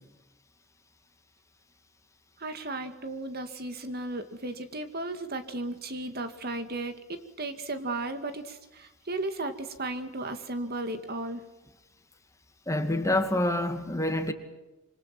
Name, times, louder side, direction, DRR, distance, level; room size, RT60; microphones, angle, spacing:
voice 1, 2.4-11.4, right 2 dB, 50° right, 2.2 m, -35 dB
voice 2, 12.7-14.3, left 1 dB, 15° left, 2.5 m, -27 dB
27.0 x 25.5 x 6.1 m
head